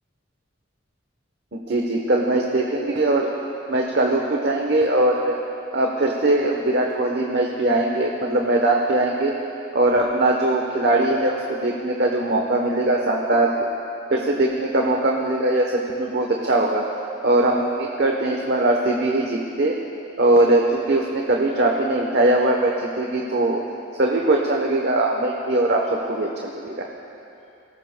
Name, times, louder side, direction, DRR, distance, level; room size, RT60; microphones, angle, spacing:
voice 1, 1.5-3.3 3.7-5.4 5.7-9.3 9.7-13.5 14.1-16.8 17.2-19.7 20.2-23.6 24.0-25.8 26.1-26.8, right 2 dB, 55° right, 0 dB, 1.0 m, -21 dB
23.0 x 18.0 x 2.2 m, 2.8 s
head